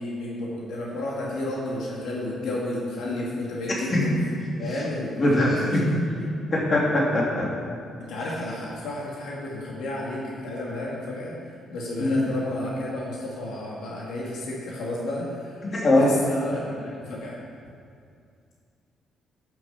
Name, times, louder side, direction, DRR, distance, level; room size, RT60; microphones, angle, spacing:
voice 1, 0.0-4.1 4.6-5.8 6.2-6.3 8.0-11.3 11.7-17.4, left 1 dB, 80° left, -4 dB, 2.3 m, -32 dB
voice 2, 5.2-5.8 6.5-7.5 12.0-12.3 15.7-16.1, left 1 dB, 35° left, -4 dB, 3.2 m, -21 dB
10.5 x 7.7 x 7.2 m, 2.3 s
cardioid pair, 90°, 0 cm